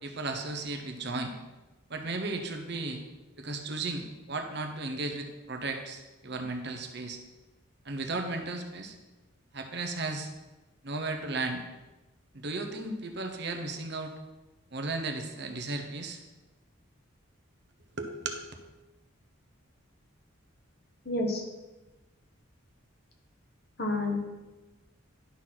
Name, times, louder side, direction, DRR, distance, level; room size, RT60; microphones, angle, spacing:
voice 1, 0.0-1.3 1.9-3.0 3.4-7.2 7.8-8.9 9.5-10.3 10.8-11.6 12.3-14.1 14.7-16.2 18.0-18.5, right 3 dB, 50° right, 4 dB, 1.0 m, -35 dB
voice 2, 21.0-21.4 23.8-24.2, left 2 dB, 50° left, 1 dB, 1.6 m, -29 dB
11.0 x 4.2 x 6.0 m, 1.1 s
head